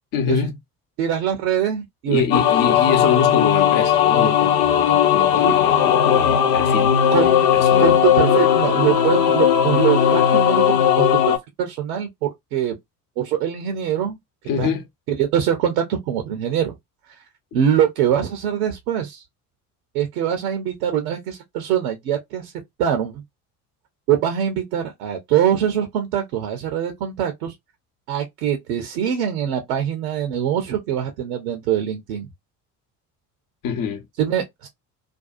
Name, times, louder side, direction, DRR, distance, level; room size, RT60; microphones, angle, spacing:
voice 1, 0.1-0.6 2.1-7.9 14.5-14.9 33.6-34.0, left 6 dB, 45° left, 0.8 m, -25 dB
voice 2, 1.0-2.2 2.7-2.8 5.4-5.5 7.1-7.5 7.8-12.7 13.2-14.2 14.6-14.7 15.1-16.7 17.5-19.2 19.9-22.5 22.8-23.2 24.1-27.5 28.1-32.3 34.2-34.7, right 9 dB, 75° right, 0.7 m, -23 dB
sound 1, 2.3-11.4, left 9 dB, 80° left, 0.7 m, -17 dB
2.5 x 2.3 x 2.3 m
hypercardioid pair, 55°, 46 cm